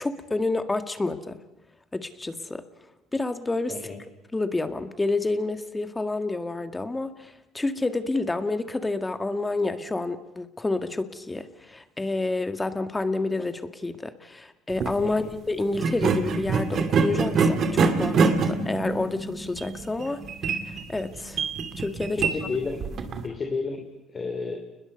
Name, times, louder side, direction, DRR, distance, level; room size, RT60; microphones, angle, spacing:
voice 1, 0.0-1.4 1.9-2.6 3.1-3.8 4.3-20.2 20.5-21.4 21.8-22.3, left 2 dB, 15° left, 9 dB, 1.7 m, -29 dB
sound 1, 14.7-15.0 15.7-23.3, right 4 dB, 50° right, 2.5 m, -25 dB
voice 2, 22.2-22.8 23.2-24.6, left 4 dB, 35° left, 4 dB, 3.0 m, -31 dB
29.5 x 21.0 x 5.4 m, 0.96 s
supercardioid pair, 85°, 0 cm